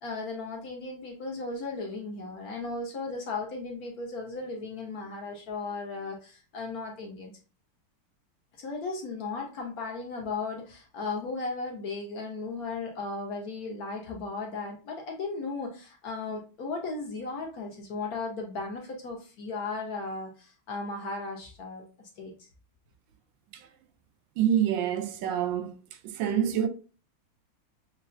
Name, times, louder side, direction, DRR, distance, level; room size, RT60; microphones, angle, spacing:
voice 1, 0.0-7.3 8.6-22.5, left 3 dB, 60° left, 1.0 m, -36 dB
voice 2, 24.4-25.7 26.0-26.7, right 9 dB, 75° right, 1.2 m, -27 dB
6.4 x 2.3 x 2.5 m
omnidirectional pair, 2.3 m